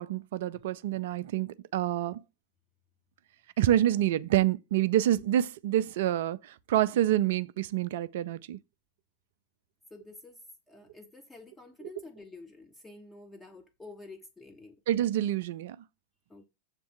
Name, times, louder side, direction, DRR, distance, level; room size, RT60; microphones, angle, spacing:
voice 1, 0.0-2.2 3.6-8.6 14.9-15.8, right 12 dB, 55° right, 0.4 m, -27 dB
voice 2, 9.9-14.8 16.3-16.4, left 3 dB, 10° left, 0.9 m, -49 dB
7.4 x 3.5 x 5.8 m
figure-of-eight pair, 90°, 0 cm